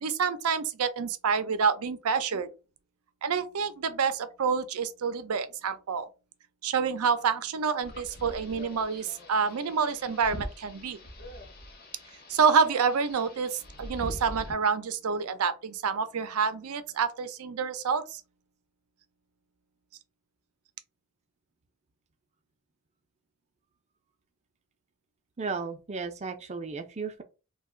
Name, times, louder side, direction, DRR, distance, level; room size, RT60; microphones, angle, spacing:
voice 1, 0.0-2.5 3.2-6.1 6.6-11.0 12.3-18.2, right 6 dB, 85° right, 0.5 m, -28 dB
sound 1, 7.8-14.5, equal, 45° left, 0.7 m, -43 dB
voice 2, 25.4-27.2, right 4 dB, 30° right, 0.4 m, -35 dB
2.4 x 2.2 x 3.7 m
head